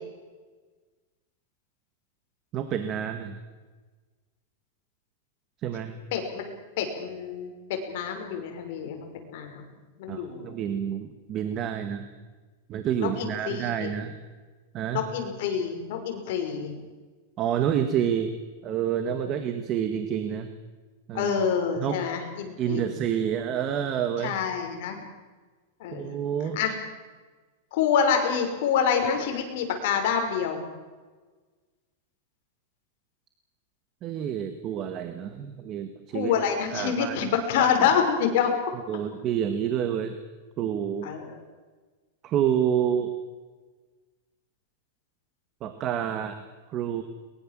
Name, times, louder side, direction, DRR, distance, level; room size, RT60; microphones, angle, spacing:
voice 1, 2.5-3.4 5.6-5.9 10.1-12.1 12.7-14.1 14.7-15.0 17.4-18.3 18.6-20.5 21.1-21.3 21.8-22.0 22.6-24.3 25.9-26.6 34.0-36.3 36.7-37.3 37.6-37.7 38.9-40.1 40.6-41.1 42.2-43.1 45.6-46.4 46.7-47.0, right 9 dB, 30° right, 8 dB, 1.6 m, -28 dB
voice 2, 6.1-9.6 10.0-10.6 13.0-13.9 14.9-16.8 19.2-19.3 21.1-23.0 24.2-25.0 25.8-26.1 26.6-26.7 27.7-30.6 36.1-38.5 41.0-41.3, left 7 dB, 50° left, 4 dB, 5.9 m, -27 dB
22.5 x 21.5 x 7.6 m, 1.3 s
supercardioid pair, 160°, 0 cm